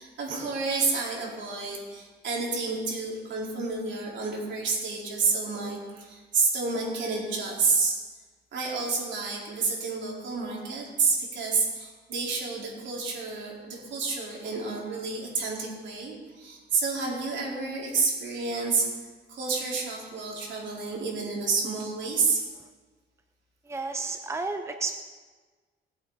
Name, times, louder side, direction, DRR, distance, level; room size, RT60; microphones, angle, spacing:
voice 1, 0.0-8.0 8.5-18.9 19.3-22.4, right 4 dB, 70° right, -3 dB, 4.4 m, -29 dB
voice 2, 23.7-24.9, right 3 dB, 15° right, 7 dB, 0.8 m, -32 dB
20.0 x 8.6 x 4.2 m, 1.4 s
cardioid pair, 90°, 20 cm